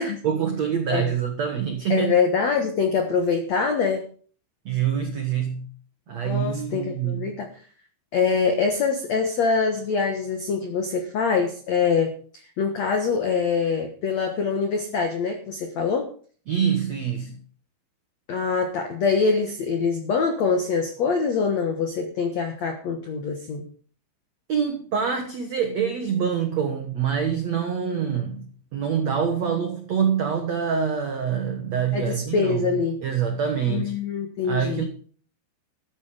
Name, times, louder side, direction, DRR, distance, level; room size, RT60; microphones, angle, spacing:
voice 1, 0.2-2.1 4.6-5.7 6.1-7.4 16.5-17.4 24.5-28.5 28.7-32.6 33.0-33.9 34.4-34.8, right 7 dB, 90° right, 5 dB, 1.5 m, -25 dB
voice 2, 1.9-4.0 6.2-7.5 8.1-12.2 12.6-16.1 18.3-23.6 31.9-33.0 33.7-34.8, left 5 dB, 85° left, 5 dB, 1.5 m, -24 dB
13.5 x 10.0 x 5.0 m, 0.43 s
omnidirectional pair, 5.5 m